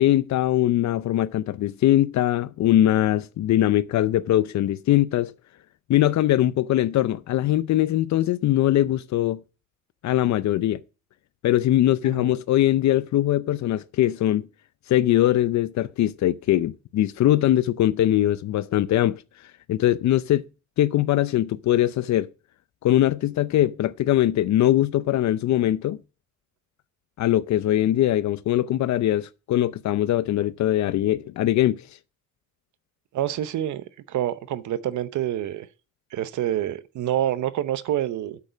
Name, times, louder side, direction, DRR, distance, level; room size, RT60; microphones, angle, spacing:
voice 1, 0.0-5.3 5.9-9.4 10.0-10.8 11.4-14.5 14.9-19.2 19.7-20.4 20.8-22.3 22.8-26.0 27.2-31.8, left 13 dB, 65° left, 0.6 m, -21 dB
voice 2, 33.1-35.7 36.1-38.4, right 12 dB, 75° right, 0.9 m, -27 dB
8.4 x 6.5 x 6.4 m
cardioid pair, 90°, 30 cm